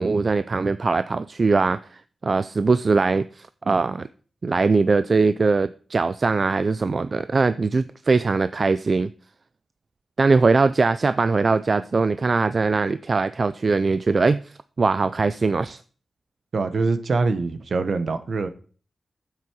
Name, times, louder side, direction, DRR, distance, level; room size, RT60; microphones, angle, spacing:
voice 1, 0.0-1.8 2.2-4.1 4.4-9.1 10.2-14.4 14.8-15.8, right 4 dB, 40° right, 0.4 m, -21 dB
voice 2, 16.5-18.5, right 3 dB, 60° right, 1.1 m, -24 dB
9.2 x 7.7 x 4.7 m
wide cardioid pair, 115°, 0 cm